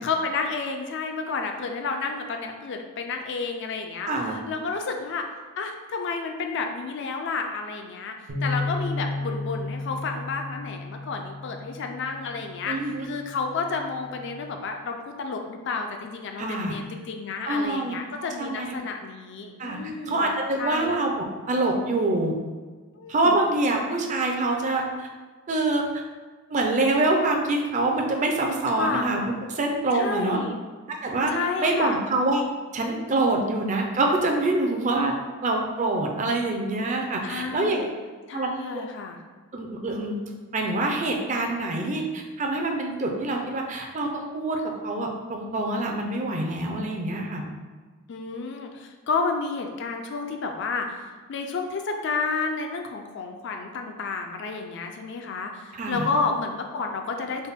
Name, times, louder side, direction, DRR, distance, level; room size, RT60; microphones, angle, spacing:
voice 1, 0.0-5.3 5.6-12.8 13.0-20.9 23.0-23.4 28.8-29.1 29.9-30.6 31.3-32.0 37.2-37.9 38.3-39.2 48.1-57.5, left 4 dB, 55° left, 4 dB, 0.4 m, -31 dB
voice 2, 4.0-4.4 12.7-13.1 16.4-16.7 17.5-18.8 19.6-19.8 20.1-22.4 23.1-25.1 25.5-26.0 26.5-30.4 30.9-32.4 32.7-35.1 35.4-37.9 38.3-38.5 39.5-40.2 40.5-47.5 55.7-56.1, right 2 dB, 35° right, 1 dB, 0.4 m, -25 dB
sound 1, 8.3-14.5, left 2 dB, 85° right, 0.7 m, -34 dB
4.0 x 2.1 x 3.5 m, 1.4 s
head